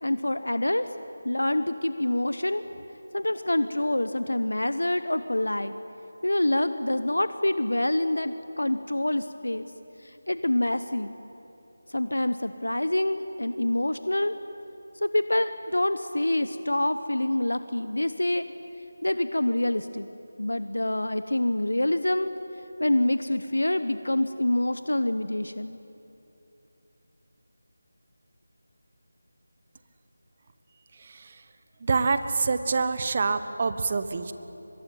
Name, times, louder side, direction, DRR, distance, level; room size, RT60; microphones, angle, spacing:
voice 1, 0.0-0.9 1.2-2.8 3.1-5.7 6.2-9.7 10.0-11.1 11.9-14.3 15.0-18.5 19.0-20.1 20.4-22.3 22.8-25.8, left 1 dB, 85° left, 12 dB, 0.9 m, -26 dB
voice 2, 30.9-31.4 31.8-34.3, right 4 dB, 35° right, 11 dB, 1.2 m, -26 dB
23.5 x 21.5 x 9.4 m, 2.9 s
figure-of-eight pair, 165°, 0 cm